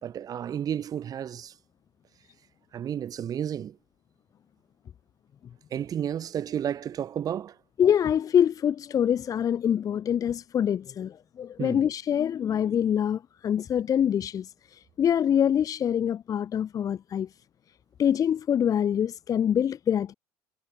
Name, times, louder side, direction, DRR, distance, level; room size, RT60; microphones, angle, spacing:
voice 1, 0.0-1.5 2.7-3.8 5.7-7.6 11.6-11.9, right 9 dB, 45° right, 2.0 m, -32 dB
voice 2, 7.8-17.3 18.0-20.1, left 9 dB, 40° left, 1.1 m, -25 dB
hypercardioid pair, 80°, 9 cm